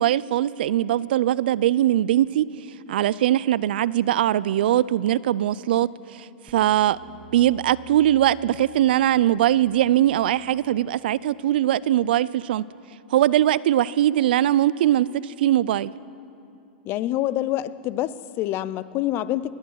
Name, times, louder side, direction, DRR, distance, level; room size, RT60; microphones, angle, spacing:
voice 1, 0.0-2.5 2.9-5.9 6.2-7.0 7.3-12.6 13.1-15.9, right 12 dB, 70° right, 20 dB, 0.4 m, -21 dB
sound 1, 6.5-11.7, right 1 dB, 25° right, 1.5 m, -51 dB
voice 2, 16.9-19.5, left 14 dB, 40° left, 17 dB, 0.6 m, -26 dB
20.0 x 10.0 x 6.4 m, 2.6 s
hypercardioid pair, 115°, 5 cm